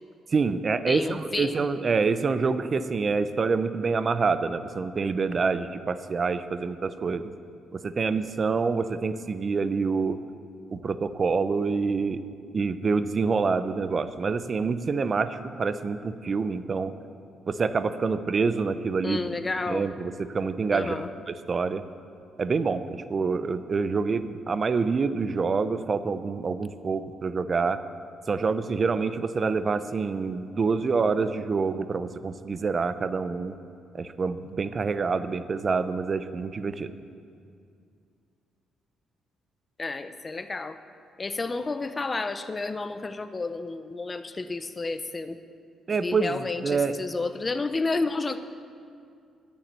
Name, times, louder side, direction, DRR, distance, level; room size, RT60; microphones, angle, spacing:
voice 1, 0.3-7.3 7.7-10.2 10.7-12.2 12.5-16.9 17.5-19.2 19.7-21.8 22.4-27.8 28.3-33.6 33.9-36.9 45.9-47.0, right 4 dB, 40° right, 12 dB, 0.6 m, -27 dB
voice 2, 0.9-1.6 19.0-19.9 20.7-21.1 39.8-40.8 41.2-45.4 46.0-48.4, left 3 dB, 25° left, 10 dB, 0.7 m, -31 dB
10.0 x 7.2 x 9.2 m, 2.4 s
cardioid pair, 90°, 0 cm